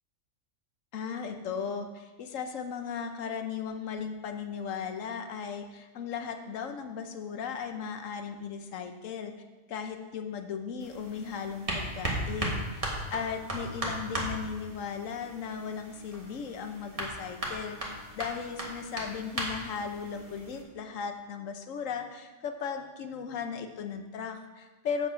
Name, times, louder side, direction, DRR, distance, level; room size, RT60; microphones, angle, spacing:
voice 1, 0.9-9.3 9.7-25.1, left 6 dB, 85° left, 7 dB, 1.2 m, -37 dB
sound 1, 10.8-20.6, right 1 dB, 30° right, 1.6 m, -37 dB
8.1 x 5.8 x 6.3 m, 1.2 s
omnidirectional pair, 1.3 m